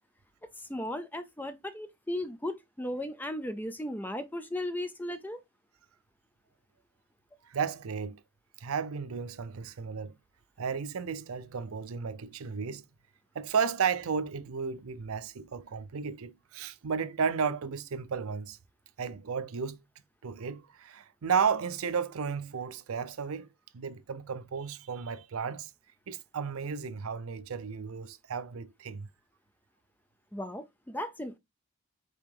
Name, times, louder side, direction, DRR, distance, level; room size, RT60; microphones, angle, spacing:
voice 1, 0.6-5.4 30.3-31.4, left 1 dB, 10° left, 0.4 m, -36 dB
voice 2, 7.5-8.2 8.6-10.1 10.6-12.8 13.3-18.6 19.0-19.8 20.2-23.5 23.7-25.7 26.1-29.1, right 6 dB, 75° right, 0.5 m, -33 dB
5.3 x 2.8 x 3.4 m
head